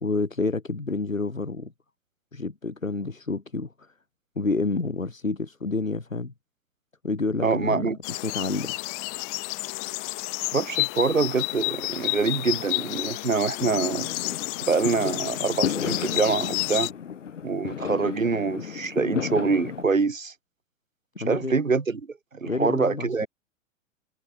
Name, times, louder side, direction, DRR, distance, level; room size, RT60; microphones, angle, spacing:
voice 1, 0.0-1.7 2.3-3.9 4.4-6.3 7.0-8.8 21.2-21.6 22.5-23.3, left 3 dB, 85° left, 2.1 m, -29 dB
voice 2, 7.4-8.0 10.5-14.1 14.6-16.9 17.4-20.3 21.3-22.0 22.3-23.3, right 4 dB, 80° right, 2.0 m, -25 dB
sound 1, 8.0-16.9, left 40 dB or more, 35° left, 2.2 m, -31 dB
Fireworks, 13.6-19.8, left 7 dB, 65° left, 4.6 m, -33 dB
figure-of-eight pair, 105°, 39 cm